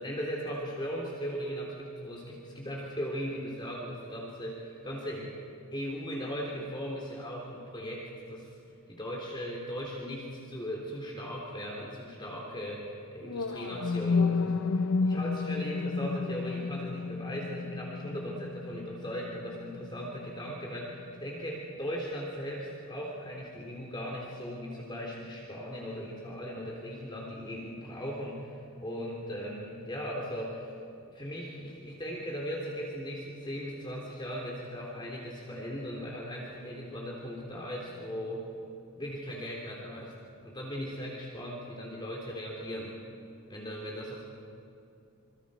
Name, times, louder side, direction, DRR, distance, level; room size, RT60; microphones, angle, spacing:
voice 1, 0.0-5.5 5.7-8.6 8.9-30.7 31.1-38.5 39.0-40.2 40.4-43.1 43.5-44.2, equal, 20° left, -3 dB, 3.5 m, -38 dB
sound 1, 13.2-21.3, left 4 dB, 65° left, 0.5 m, -32 dB
27.5 x 27.0 x 5.1 m, 2.7 s
head